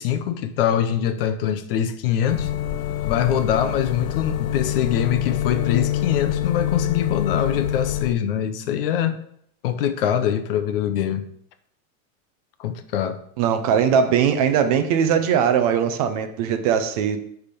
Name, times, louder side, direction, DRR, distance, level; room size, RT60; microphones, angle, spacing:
voice 1, 0.0-2.5 3.0-9.2 9.6-11.2 12.6-13.2, left 9 dB, 45° left, 10 dB, 0.6 m, -23 dB
sound 1, 2.3-8.1, left 11 dB, 85° left, 0.8 m, -25 dB
voice 2, 13.4-17.2, right 7 dB, 30° right, 8 dB, 0.5 m, -20 dB
9.8 x 3.5 x 5.2 m, 0.69 s
supercardioid pair, 175°, 41 cm